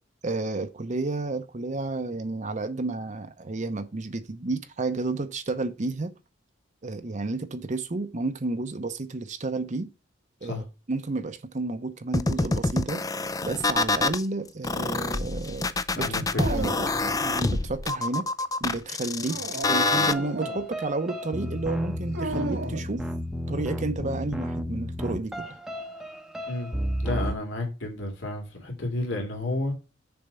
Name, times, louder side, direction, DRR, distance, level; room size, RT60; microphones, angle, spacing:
voice 1, 0.2-6.1 6.8-9.9 10.4-13.0 13.4-16.1 16.4-16.7 17.2-18.3 18.6-19.4 19.7-23.0 23.5-25.6, right 3 dB, 40° right, 0.7 m, -31 dB
sound 1, 12.1-14.2 14.6-20.1, left 3 dB, 20° left, 0.4 m, -26 dB
voice 2, 16.0-16.7 19.2-19.4 26.5-26.7 27.0-29.8, left 2 dB, 75° left, 2.8 m, -31 dB
Dog, 16.3-17.3 19.2-20.6 22.1-22.9, right 2 dB, 70° right, 1.5 m, -34 dB
sound 2, 20.1-27.3, equal, 5° right, 0.8 m, -33 dB
7.0 x 4.3 x 6.7 m
head